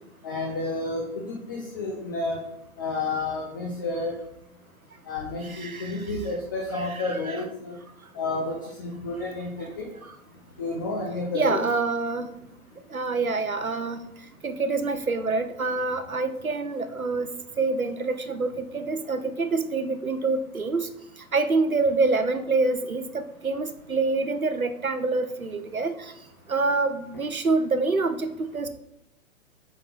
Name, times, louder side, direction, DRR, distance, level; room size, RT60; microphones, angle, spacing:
voice 1, 0.2-2.4 2.8-4.1 5.1-7.8 8.1-9.9 10.6-11.6, left 2 dB, 15° left, 0 dB, 0.4 m, -30 dB
voice 2, 5.4-6.1 6.7-7.4 10.0-10.2 11.3-12.3 12.9-14.0 14.4-17.3 17.6-20.9 21.3-26.1 26.5-28.7, right 3 dB, 90° right, 9 dB, 0.8 m, -26 dB
8.7 x 4.0 x 4.0 m, 0.79 s
figure-of-eight pair, 115°, 41 cm